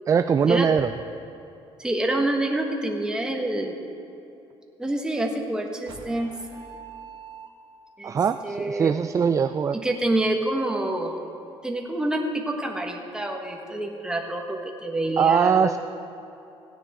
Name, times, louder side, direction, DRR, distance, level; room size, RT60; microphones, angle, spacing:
voice 1, 0.1-0.9 8.0-9.8 15.2-15.8, right 6 dB, 30° right, 9 dB, 0.3 m, -21 dB
voice 2, 1.8-3.8 4.8-6.3 8.0-8.2 8.4-8.9 9.7-11.2 11.6-15.8, right 1 dB, 10° right, 2 dB, 1.5 m, -27 dB
sound 1, 5.9-8.0, right 6 dB, 50° right, 1.6 m, -44 dB
16.5 x 10.0 x 3.8 m, 2.9 s
cardioid pair, 105°, 10 cm